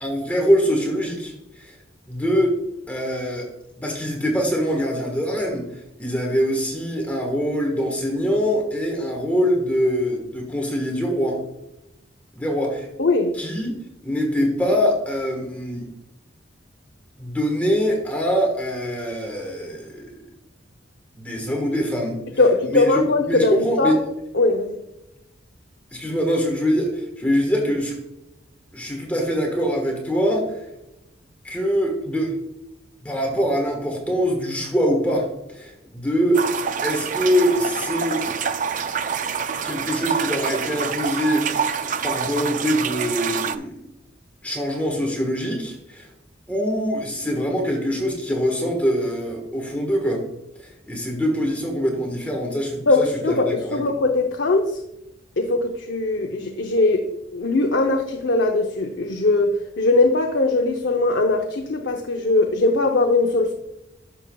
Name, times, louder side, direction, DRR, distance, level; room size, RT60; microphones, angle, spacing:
voice 1, 0.0-1.8 2.1-2.6 2.9-3.5 3.8-5.7 6.0-11.4 12.3-12.9 13.3-13.7 14.0-15.9 17.2-20.1 21.2-22.2 22.6-24.0 25.9-27.9 28.7-30.7 31.4-32.3 33.0-36.5 36.8-38.2 39.6-41.6 42.0-43.7 44.4-46.1 46.5-50.2 50.6-53.8, equal, 10° left, 0 dB, 1.3 m, -23 dB
voice 2, 13.0-13.3 22.4-23.9 24.3-24.8 52.9-54.8 55.4-63.5, left 2 dB, 65° left, 3 dB, 0.7 m, -20 dB
sound 1, 36.3-43.6, right 6 dB, 40° right, 0.4 m, -26 dB
11.5 x 6.7 x 2.3 m, 0.88 s
head